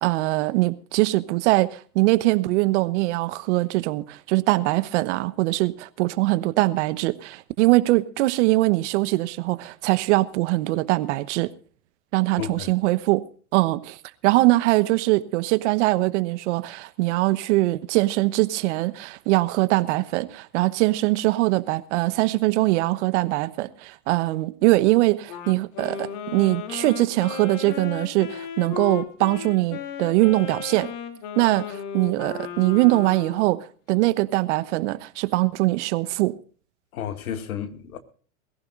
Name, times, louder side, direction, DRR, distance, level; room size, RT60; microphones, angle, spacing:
voice 1, 0.0-11.5 12.1-13.2 13.5-14.0 14.2-30.9 31.4-36.3, right 20 dB, 50° right, 1.1 m, -22 dB
voice 2, 12.4-12.7 36.9-38.0, left 9 dB, 70° left, 2.3 m, -32 dB
Wind instrument woodwind instrument, 25.3-33.6, left 9 dB, 45° left, 2.8 m, -35 dB
22.0 x 15.0 x 2.5 m
hypercardioid pair, 110°, 44 cm